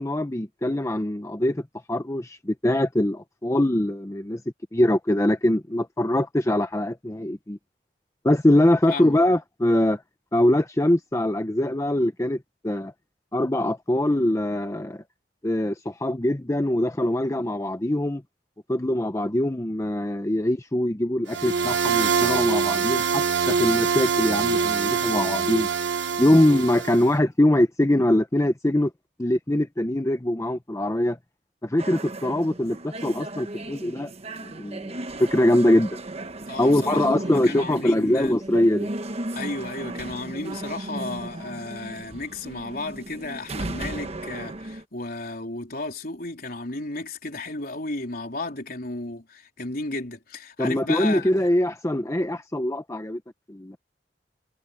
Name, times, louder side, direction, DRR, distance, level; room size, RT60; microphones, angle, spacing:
voice 1, 0.0-4.4 4.7-7.6 8.2-10.0 10.3-12.9 13.3-15.0 15.4-18.2 18.7-25.7 26.2-28.9 29.2-31.2 31.6-34.1 34.4-36.0 36.6-38.9 50.6-53.2 53.5-53.8, left 1 dB, 15° left, 0.8 m, -23 dB
voice 2, 8.9-9.2 36.5-38.4 39.3-51.3, left 2 dB, 55° left, 4.0 m, -33 dB
sound 1, 21.3-27.1, right 6 dB, 85° right, 1.1 m, -24 dB
sound 2, 31.8-44.8, right 2 dB, 35° right, 1.2 m, -35 dB
head